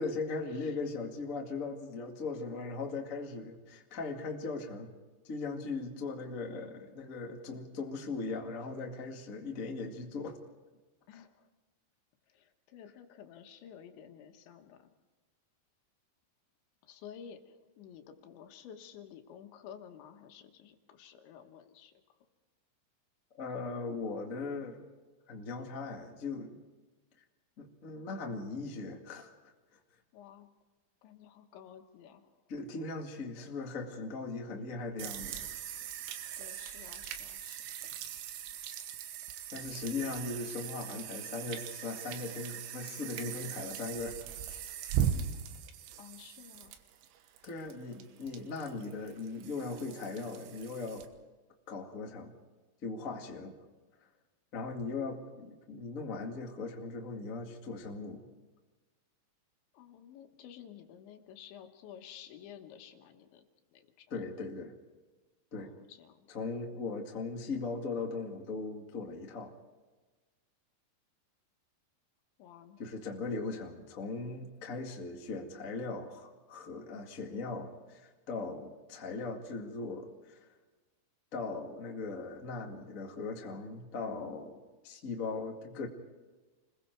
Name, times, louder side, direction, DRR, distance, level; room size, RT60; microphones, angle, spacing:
voice 1, 0.0-4.9 5.2-10.4 23.4-24.8 25.3-26.5 27.6-29.5 32.5-35.5 39.5-44.2 44.5-44.6 47.4-51.1 51.7-52.3 52.8-53.6 54.5-58.3 64.1-64.7 65.5-65.7 66.3-69.6 72.8-80.4 81.3-85.9, left 3 dB, 50° left, 1 dB, 0.9 m, -39 dB
voice 2, 11.1-11.5 12.3-14.9 16.8-21.9 30.1-30.5 31.0-32.3 36.4-37.6 46.0-46.7 59.7-63.4 63.7-64.2 65.6-66.3 72.4-72.8, left 9 dB, 75° left, 5 dB, 3.6 m, -52 dB
sound 1, 35.0-51.1, right 9 dB, 85° right, 3.7 m, -40 dB
29.0 x 21.0 x 4.6 m, 1.2 s
omnidirectional pair, 5.4 m